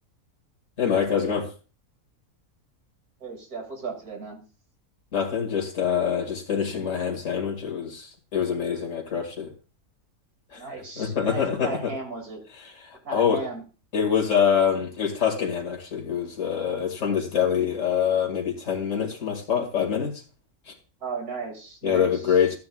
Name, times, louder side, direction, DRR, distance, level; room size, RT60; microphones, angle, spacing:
voice 1, 0.8-1.5 5.1-9.5 10.5-10.6 11.0-11.9 12.9-13.4 13.9-20.1 21.8-22.6, left 7 dB, 60° left, 2.5 m, -25 dB
voice 2, 3.2-4.4 10.6-12.4 13.0-13.6 21.0-22.4, right 4 dB, 90° right, 3.0 m, -35 dB
13.5 x 9.4 x 2.4 m
omnidirectional pair, 1.5 m